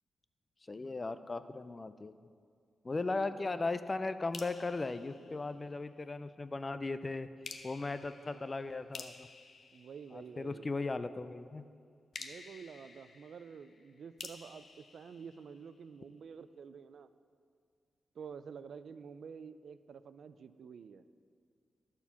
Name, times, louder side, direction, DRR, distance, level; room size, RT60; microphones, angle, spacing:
voice 1, 0.7-2.1 2.8-7.3 7.6-9.3 10.1-11.7, left 3 dB, 25° left, 12 dB, 0.4 m, -37 dB
voice 2, 2.9-3.6 8.2-8.5 9.7-10.7 12.2-17.1 18.1-21.1, right 6 dB, 70° right, 13 dB, 0.3 m, -49 dB
sound 1, 4.3-6.1 7.4-10.8 12.1-16.0, left 4 dB, 55° left, 0.7 m, -52 dB
12.5 x 4.4 x 7.0 m, 2.2 s
wide cardioid pair, 125°, 0 cm